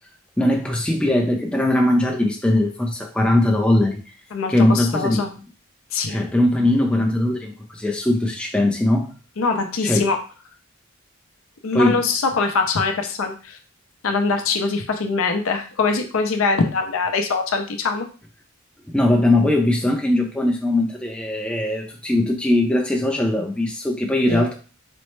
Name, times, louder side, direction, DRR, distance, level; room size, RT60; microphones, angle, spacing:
voice 1, 0.4-4.0 4.5-5.2 6.1-9.1 9.8-10.0 11.7-12.0 18.9-24.5, left 1 dB, 5° left, 0 dB, 0.5 m, -20 dB
voice 2, 4.3-5.3 5.9-6.2 9.4-10.2 11.6-13.6 14.0-18.1 24.3-24.4, left 4 dB, 65° left, 5 dB, 0.5 m, -23 dB
4.3 x 2.0 x 3.1 m, 0.35 s
head